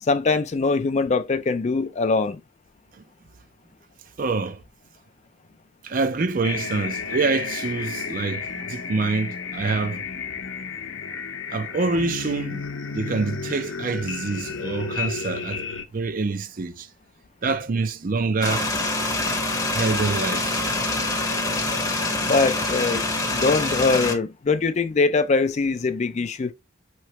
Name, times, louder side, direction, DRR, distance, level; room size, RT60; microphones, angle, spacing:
voice 1, 0.0-2.4 22.2-26.5, left 4 dB, 35° left, 0.4 m, -22 dB
voice 2, 4.2-4.6 5.8-10.0 11.5-12.7 12.9-15.6 15.9-16.9 17.4-18.8 19.7-20.7, right 4 dB, 40° right, 0.5 m, -26 dB
sound 1, 6.4-15.8, left 5 dB, 70° left, 0.7 m, -32 dB
sound 2, 18.4-24.1, left 2 dB, 15° left, 0.8 m, -25 dB
5.6 x 3.1 x 2.9 m
head